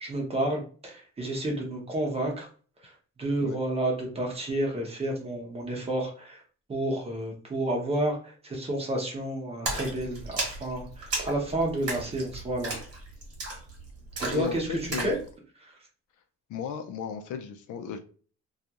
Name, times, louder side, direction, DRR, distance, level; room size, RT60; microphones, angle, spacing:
voice 1, 0.0-2.5 2.8-2.9 3.2-6.4 6.7-12.7 14.2-15.1 15.6-15.7, right 1 dB, 20° right, 0 dB, 0.7 m, -30 dB
Splash splatter, 9.7-15.2, right 2 dB, 55° right, 1.2 m, -35 dB
voice 2, 14.3-15.2 16.5-18.0, left 6 dB, 85° left, 6 dB, 0.5 m, -35 dB
2.4 x 2.3 x 2.8 m, 0.41 s
cardioid pair, 175°, 29 cm